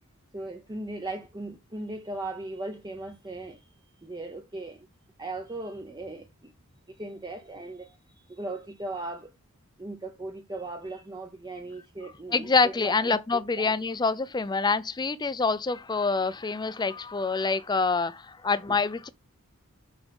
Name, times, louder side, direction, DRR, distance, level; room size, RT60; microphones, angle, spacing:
voice 1, 0.3-3.7 4.0-4.9 5.2-6.5 6.9-9.3 9.8-13.7 18.7-18.8, right 2 dB, 20° right, 0.7 m, -38 dB
voice 2, 12.3-19.1, left 4 dB, 20° left, 0.5 m, -26 dB
6.0 x 5.0 x 5.2 m
head